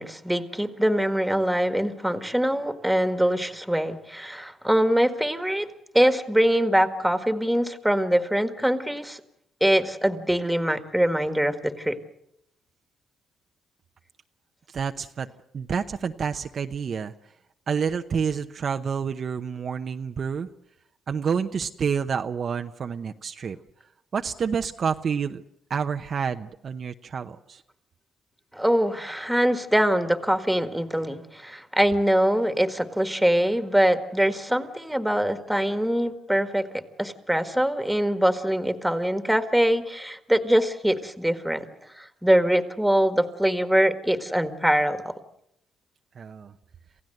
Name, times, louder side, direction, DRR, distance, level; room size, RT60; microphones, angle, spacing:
voice 1, 0.0-5.7 5.9-9.2 9.6-12.0 28.5-36.6 37.0-41.7 42.0-45.1, equal, 5° right, 9 dB, 1.8 m, -23 dB
voice 2, 14.7-15.3 15.5-17.1 17.7-20.5 21.1-23.6 24.1-25.4 25.7-27.6 46.2-46.5, right 6 dB, 50° right, 6 dB, 0.8 m, -28 dB
28.0 x 15.5 x 7.9 m, 0.77 s
cardioid pair, 90°, 0 cm